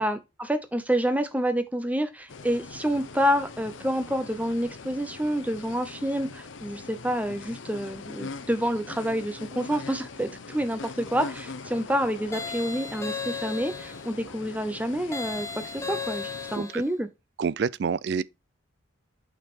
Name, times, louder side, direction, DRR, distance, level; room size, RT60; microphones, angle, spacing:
voice 1, 0.0-17.1, equal, 10° right, 0.7 m, -28 dB
sound 1, 2.3-16.6, left 4 dB, 75° left, 0.7 m, -42 dB
sound 2, 12.3-14.1 15.1-16.9, left 5 dB, 15° left, 1.0 m, -35 dB
voice 2, 16.5-16.8 17.4-18.2, right 6 dB, 60° right, 0.3 m, -28 dB
5.7 x 5.3 x 4.4 m
head